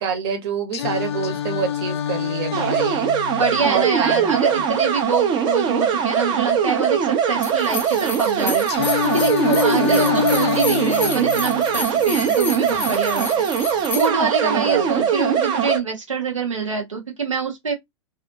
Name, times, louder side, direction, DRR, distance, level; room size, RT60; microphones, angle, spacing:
voice 1, 0.0-3.1 3.6-4.7 9.8-10.3 14.4-15.1, right 6 dB, 50° right, 1.2 m, -27 dB
Singing, 0.7-4.7 8.7-12.7, left 9 dB, 60° left, 0.4 m, -26 dB
sound 1, 2.5-15.8, right 7 dB, 30° right, 0.6 m, -21 dB
voice 2, 3.4-17.7, right 5 dB, 85° right, 0.7 m, -25 dB
sound 2, 7.4-14.1, left 4 dB, 15° left, 0.6 m, -31 dB
2.5 x 2.4 x 2.5 m
figure-of-eight pair, 105°, 16 cm